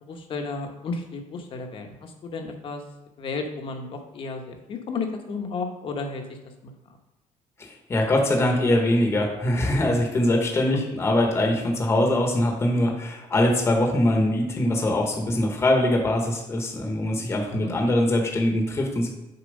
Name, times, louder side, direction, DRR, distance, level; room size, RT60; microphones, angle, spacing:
voice 1, 0.0-2.8 3.2-6.2 6.6-6.7 17.6-17.7, left 4 dB, 40° left, 4 dB, 0.9 m, -33 dB
voice 2, 7.6-19.1, left 1 dB, 20° left, 1 dB, 1.0 m, -22 dB
6.8 x 4.3 x 5.3 m, 1.0 s
cardioid pair, 175°, 13 cm